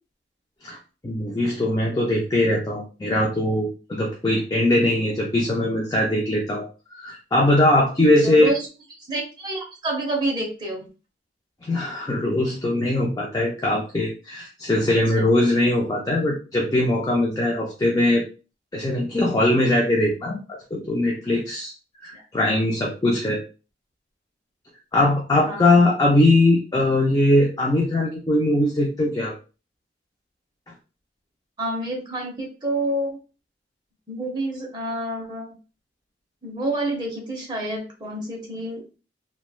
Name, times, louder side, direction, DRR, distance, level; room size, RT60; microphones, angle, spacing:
voice 1, 1.0-6.7 7.0-8.5 11.6-18.2 18.7-20.4 20.7-21.7 22.0-23.4 24.9-29.3, left 1 dB, 20° left, -2 dB, 0.4 m, -21 dB
voice 2, 8.2-8.7 9.0-10.9 14.9-15.2 22.1-22.2 25.4-25.8 31.6-33.2 34.1-35.5 36.4-38.8, right 1 dB, 25° right, 0 dB, 0.7 m, -28 dB
3.0 x 2.2 x 2.3 m, 0.33 s
head